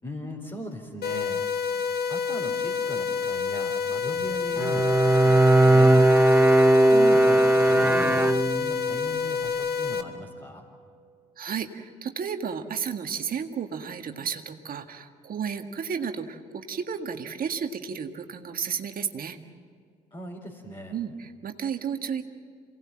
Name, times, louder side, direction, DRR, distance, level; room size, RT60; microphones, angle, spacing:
voice 1, 0.0-1.5 2.1-5.9 6.7-10.6 20.1-21.0, equal, 25° left, -3 dB, 4.5 m, -39 dB
sound 1, 1.0-10.0, left 6 dB, 55° left, 1.7 m, -28 dB
Bowed string instrument, 4.6-8.9, right 1 dB, 5° right, 0.7 m, -18 dB
voice 2, 11.4-19.4 20.9-22.2, right 7 dB, 45° right, 6 dB, 1.8 m, -32 dB
28.0 x 18.5 x 7.7 m, 2.2 s
hypercardioid pair, 55°, 20 cm